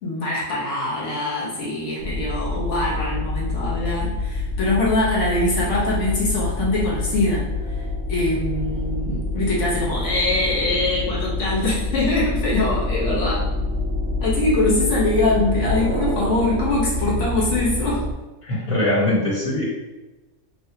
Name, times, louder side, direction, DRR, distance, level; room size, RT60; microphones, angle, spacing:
voice 1, 0.0-7.5 8.1-13.4 14.2-18.1, left 2 dB, 60° left, -7 dB, 1.3 m, -23 dB
sound 1, 2.0-18.1, left 2 dB, 60° right, 1.0 m, -26 dB
voice 2, 18.4-19.6, left 1 dB, 25° left, -7 dB, 1.0 m, -21 dB
3.2 x 2.5 x 2.8 m, 1.1 s
omnidirectional pair, 1.5 m